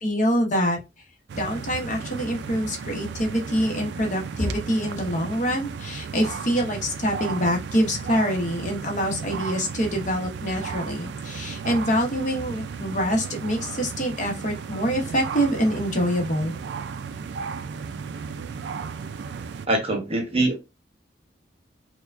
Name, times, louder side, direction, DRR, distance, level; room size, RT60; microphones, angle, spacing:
voice 1, 0.0-0.8 1.3-16.5, equal, 40° left, 1 dB, 0.9 m, -25 dB
sound 1, 1.3-19.7, right 5 dB, 65° right, 0.3 m, -35 dB
voice 2, 19.7-20.6, right 2 dB, 30° right, 3 dB, 0.7 m, -23 dB
4.5 x 2.2 x 2.5 m, 0.24 s
head